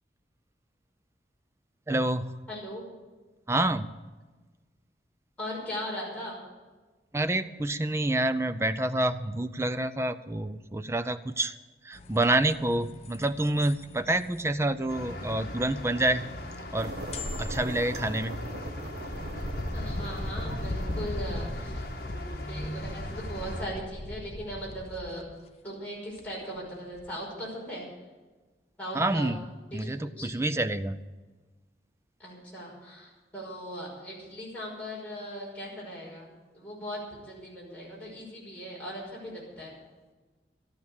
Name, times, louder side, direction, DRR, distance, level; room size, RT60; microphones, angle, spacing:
voice 1, 1.9-2.3 3.5-3.9 7.1-11.5 11.9-16.3 16.7-16.9 17.4-18.4 28.9-29.4 29.7-31.0, right 1 dB, 15° right, 11 dB, 0.5 m, -28 dB
voice 2, 2.5-2.8 5.4-6.4 19.7-25.3 25.6-27.9 28.8-29.3 29.7-29.9 30.2-30.3 32.2-36.3 36.5-39.8, equal, 10° left, -6 dB, 5.6 m, -39 dB
sound 1, 11.9-18.7 19.1-25.2 26.2-26.6 27.0-27.1, left 1 dB, 35° left, 0.9 m, -40 dB
sound 2, 14.9-23.6, left 1 dB, 55° left, 1.7 m, -39 dB
sound 3, 16.8-22.0, right 1 dB, 75° right, 1.3 m, -40 dB
13.0 x 9.6 x 8.6 m, 1.3 s
head